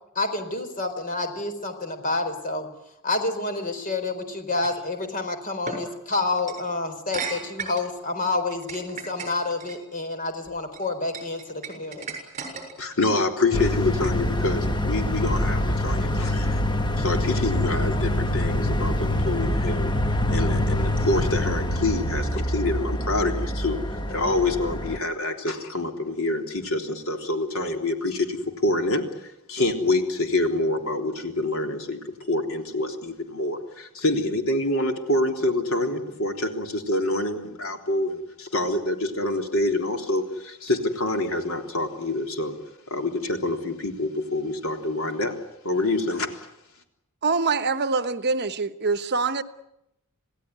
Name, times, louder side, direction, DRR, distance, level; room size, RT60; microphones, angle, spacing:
voice 1, 0.1-2.7 3.0-12.1, left 3 dB, 40° left, 7 dB, 4.3 m, -28 dB
sound 1, 4.6-4.8 5.7-5.8 6.4-6.6 7.1-7.9 8.5-9.8 10.5-10.8 11.1-12.9, right 5 dB, 35° right, 6.8 m, -35 dB
voice 2, 12.8-16.7 17.0-19.9 20.3-23.8 24.1-32.0 32.3-42.5 42.9-45.4 45.6-46.5, left 2 dB, 65° left, 4 dB, 3.7 m, -26 dB
sound 2, 13.5-25.0, left 1 dB, 20° left, 1.3 m, -25 dB
voice 3, 47.2-49.4, right 4 dB, 50° right, 11 dB, 1.1 m, -24 dB
28.0 x 17.5 x 9.5 m, 0.85 s
head